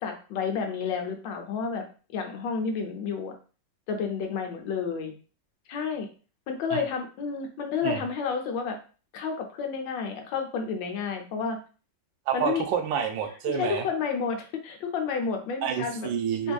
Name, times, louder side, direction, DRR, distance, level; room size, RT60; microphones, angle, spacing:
voice 1, 0.0-1.8 2.1-3.3 3.9-5.1 5.7-6.1 6.5-8.8 9.1-11.6 12.3-12.6 13.5-16.1 16.4-16.5, left 5 dB, 85° left, 4 dB, 1.4 m, -30 dB
voice 2, 12.3-13.8 15.6-16.5, right 8 dB, 90° right, 5 dB, 1.3 m, -28 dB
4.1 x 2.6 x 2.3 m, 0.37 s
omnidirectional pair, 2.0 m